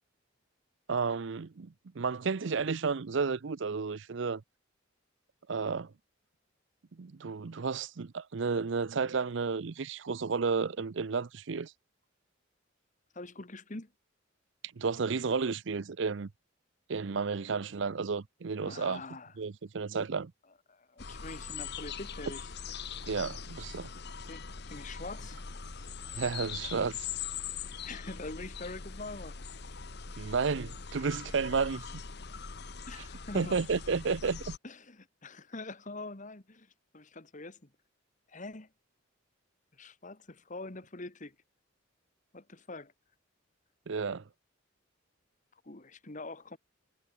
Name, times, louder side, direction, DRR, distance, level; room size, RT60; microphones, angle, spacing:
voice 1, 0.9-4.4 5.5-5.9 7.0-11.7 14.8-16.3 16.9-19.0 19.4-20.3 23.1-23.9 26.1-27.1 30.2-31.9 33.3-34.5 43.9-44.2, right 5 dB, 60° right, 0.6 m, -32 dB
voice 2, 13.1-13.9 18.7-19.3 20.7-22.5 24.3-25.4 27.8-29.4 32.9-33.6 34.6-37.6 38.3-38.7 39.7-41.4 42.3-42.9 45.6-46.6, left 2 dB, 40° left, 1.7 m, -44 dB
sound 1, 21.0-34.6, left 6 dB, 55° left, 1.2 m, -42 dB
head